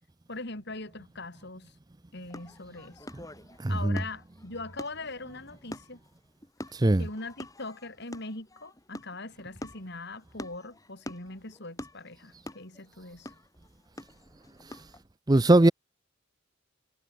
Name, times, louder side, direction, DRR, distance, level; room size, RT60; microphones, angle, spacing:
voice 1, 0.3-1.7 2.1-3.1 3.7-6.0 7.0-13.3, left 2 dB, 55° left, 4.5 m, -41 dB
sound 1, 2.3-15.0, left 1 dB, 15° left, 3.6 m, -46 dB
voice 2, 3.6-4.0 6.7-7.1 15.3-15.7, right 2 dB, 20° right, 0.5 m, -20 dB
head